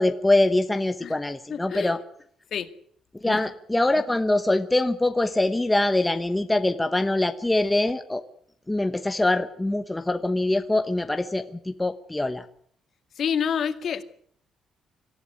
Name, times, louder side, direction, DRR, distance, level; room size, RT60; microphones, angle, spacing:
voice 1, 0.0-2.0 3.2-8.2 8.7-12.5, left 2 dB, 10° left, 1.0 m, -23 dB
voice 2, 1.5-2.0 2.5-2.7 3.3-3.5 13.2-14.0, left 7 dB, 50° left, 2.0 m, -28 dB
26.0 x 15.0 x 9.9 m
cardioid pair, 155°, 0 cm